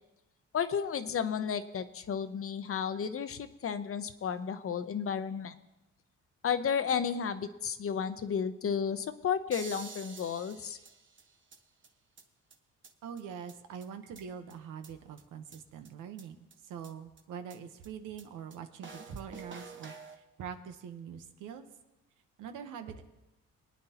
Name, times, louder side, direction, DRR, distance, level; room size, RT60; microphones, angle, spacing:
voice 1, 0.5-5.5 6.4-10.8, left 7 dB, 45° left, 11 dB, 0.8 m, -33 dB
sound 1, 9.5-11.6 11.8-11.9 12.2-12.3 12.5-12.6 12.8-12.9 13.2-13.3 13.5-13.6 13.8-14.5 14.8-14.9 15.2-15.3 15.5-15.6 15.8-15.9 16.2-16.3 16.5-16.6 16.8-16.9 17.2-17.3 17.5-17.6 17.8-17.9 18.2-18.3 18.5-18.6 18.8-20.2, right 4 dB, 40° right, 1.3 m, -48 dB
voice 2, 13.0-16.4 16.6-21.7 22.4-23.0, right 7 dB, 85° right, 7 dB, 1.1 m, -44 dB
23.5 x 9.5 x 2.9 m, 0.97 s
cardioid pair, 90°, 30 cm